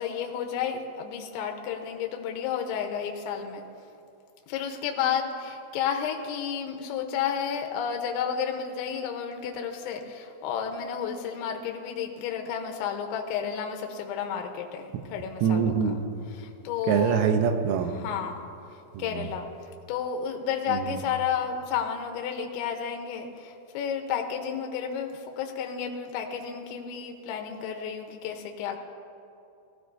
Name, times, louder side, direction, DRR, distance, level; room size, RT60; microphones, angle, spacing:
voice 1, 0.0-3.6 4.5-15.9 16.3-17.3 17.8-18.5 19.0-19.5 19.9-28.8, left 7 dB, 75° left, 4 dB, 3.1 m, -32 dB
voice 2, 15.4-16.0 16.9-18.0 19.0-19.3 20.7-21.0, right 7 dB, 90° right, 6 dB, 3.6 m, -24 dB
19.5 x 16.0 x 2.7 m, 2.6 s
omnidirectional pair, 5.9 m